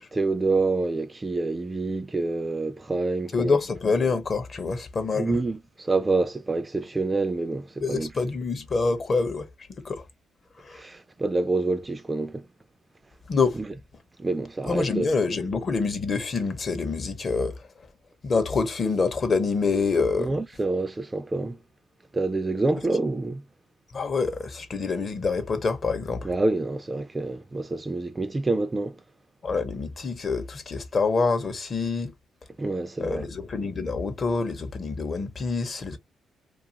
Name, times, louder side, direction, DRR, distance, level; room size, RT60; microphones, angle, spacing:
voice 1, 0.1-3.6 5.1-8.1 10.7-12.4 14.2-15.1 20.2-21.6 22.1-23.4 26.2-29.0 32.6-33.2, right 3 dB, 20° right, 0.3 m, -27 dB
voice 2, 3.3-5.4 7.8-10.1 10.6-10.8 13.3-13.6 14.6-17.9 18.2-20.4 23.9-26.3 29.4-32.1 33.0-36.0, left 4 dB, 40° left, 0.7 m, -26 dB
2.4 x 2.4 x 2.8 m
cardioid pair, 90°, 0 cm